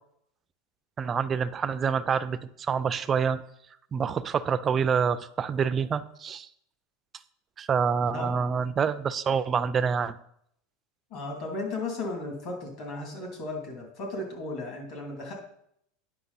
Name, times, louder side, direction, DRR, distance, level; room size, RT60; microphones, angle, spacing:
voice 1, 1.0-3.4 3.9-6.5 7.6-10.2, right 6 dB, 20° right, 13 dB, 0.3 m, -27 dB
voice 2, 11.1-15.3, left 2 dB, 40° left, 0 dB, 2.6 m, -35 dB
9.6 x 5.9 x 4.0 m, 0.72 s
supercardioid pair, 170°, 0 cm